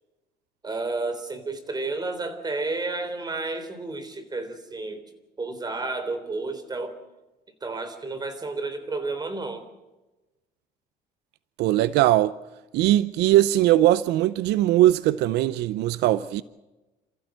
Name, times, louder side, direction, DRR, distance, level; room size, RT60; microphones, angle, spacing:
voice 1, 0.6-5.1 5.4-6.9 7.6-9.6, right 3 dB, 25° right, 3.6 m, -31 dB
voice 2, 11.6-12.3 12.7-16.4, right 14 dB, 85° right, 0.6 m, -20 dB
28.0 x 15.0 x 7.7 m
cardioid pair, 110°, 17 cm